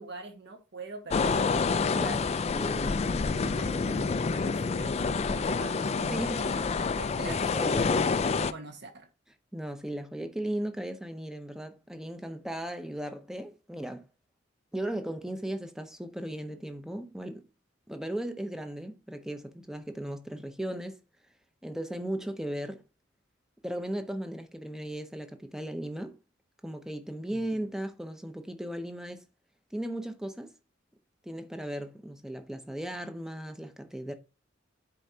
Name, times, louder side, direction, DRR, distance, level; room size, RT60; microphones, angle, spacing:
voice 1, 0.0-1.7 1.9-2.4 3.3-9.1 27.3-27.5, right 2 dB, 60° right, 1.4 m, -44 dB
sound 1, 1.1-8.5, left 4 dB, 35° left, 0.3 m, -28 dB
voice 2, 1.9-3.0 6.1-6.4 7.3-7.8 9.5-14.1 14.7-17.4 17.9-21.0 21.6-22.8 23.6-26.2 26.6-29.3 29.7-30.5 31.2-34.1, right 1 dB, 5° right, 0.7 m, -36 dB
10.5 x 4.5 x 2.8 m
head